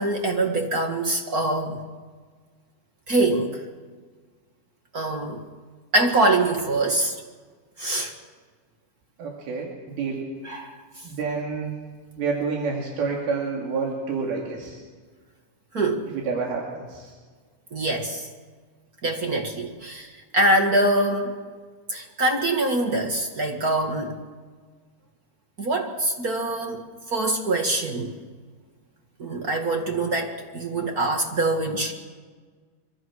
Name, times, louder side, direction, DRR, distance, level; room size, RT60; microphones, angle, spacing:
voice 1, 0.0-1.8 3.1-3.6 4.9-5.4 5.9-7.2 7.8-8.1 10.4-10.8 15.7-16.1 17.7-18.3 19.0-21.4 21.9-24.2 25.6-28.1 29.2-31.9, right 2 dB, 45° right, 3 dB, 1.2 m, -24 dB
voice 2, 9.2-10.3 11.0-11.8 12.2-14.8 16.1-17.1, right 4 dB, 80° right, -1 dB, 4.5 m, -28 dB
25.0 x 24.0 x 6.3 m, 1.5 s
omnidirectional pair, 4.3 m